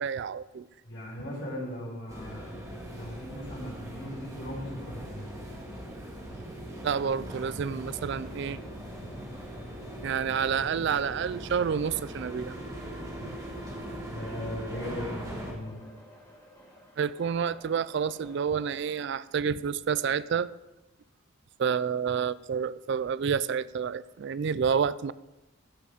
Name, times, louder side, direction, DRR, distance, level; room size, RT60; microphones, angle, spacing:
voice 1, 0.0-0.7 6.8-8.6 10.0-12.5 13.2-13.3 17.0-20.5 21.6-25.1, right 7 dB, 55° right, 18 dB, 0.3 m, -29 dB
voice 2, 0.8-2.5 2.9-5.3 14.0-15.9, left 1 dB, 55° left, -4 dB, 5.4 m, -38 dB
sound 1, 2.1-15.5, equal, 15° right, 1.9 m, -40 dB
sound 2, 7.0-19.0, left 1 dB, 15° left, 2.1 m, -53 dB
16.0 x 7.6 x 5.0 m, 1.0 s
head